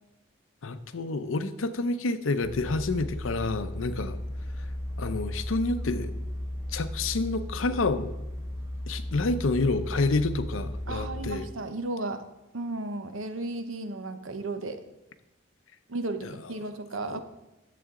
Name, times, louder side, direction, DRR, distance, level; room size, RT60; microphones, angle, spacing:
voice 1, 0.6-4.2 5.0-6.1 6.7-8.1 8.9-11.5 16.2-16.3 17.0-17.2, left 3 dB, 85° left, 11 dB, 0.6 m, -28 dB
sound 1, 2.4-11.3, left 1 dB, 15° right, 1.1 m, -35 dB
voice 2, 10.9-12.2 12.5-14.8 15.9-17.2, right 2 dB, 85° right, 9 dB, 0.9 m, -34 dB
11.0 x 7.7 x 3.7 m, 0.97 s
head